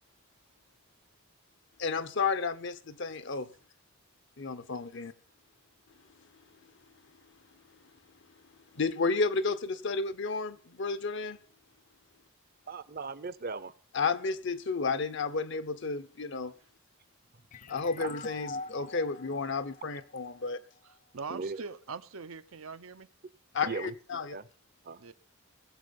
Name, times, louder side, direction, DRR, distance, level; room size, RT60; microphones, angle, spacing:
voice 1, 1.8-3.5 4.4-5.1 8.7-11.4 13.9-16.5 17.7-20.6 23.5-24.4, left 4 dB, 60° left, 0.9 m, -32 dB
voice 2, 12.7-13.7 18.0-18.1 21.3-21.6 23.6-23.9 24.3-24.4 24.8-25.0, right 4 dB, 45° right, 0.7 m, -37 dB
sound 1, 17.5-20.9, left 3 dB, 40° left, 0.5 m, -45 dB
voice 3, 20.8-23.1 25.0-25.1, right 5 dB, 85° right, 0.8 m, -42 dB
20.0 x 7.8 x 5.3 m
head